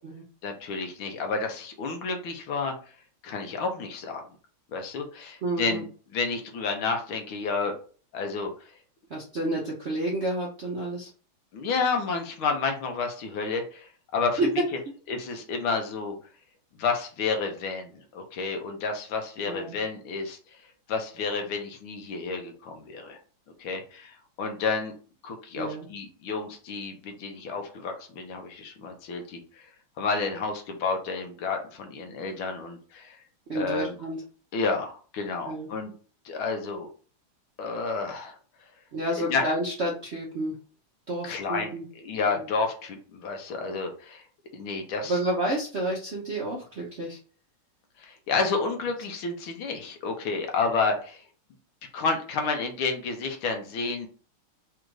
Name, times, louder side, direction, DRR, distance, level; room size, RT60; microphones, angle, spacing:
voice 1, 0.4-2.7 3.2-4.2 4.7-5.9 6.1-7.8 8.1-8.7 11.5-14.4 15.1-16.2 16.8-20.6 20.9-23.2 23.6-24.9 25.2-29.7 30.0-33.2 33.6-34.0 34.5-35.9 36.3-36.9 37.6-38.4 39.3-39.5 41.2-41.7 42.0-44.2 44.5-45.2 48.0-51.2 51.9-54.1, left 4 dB, 80° left, 4 dB, 1.8 m, -30 dB
voice 2, 5.4-5.8 9.1-11.1 14.4-14.6 19.5-19.8 25.5-25.9 33.5-34.2 35.4-35.7 38.9-40.6 41.1-41.9 42.3-42.4 45.1-47.2, right 1 dB, 60° right, -3 dB, 0.7 m, -30 dB
4.2 x 2.5 x 4.6 m, 0.40 s
omnidirectional pair, 2.3 m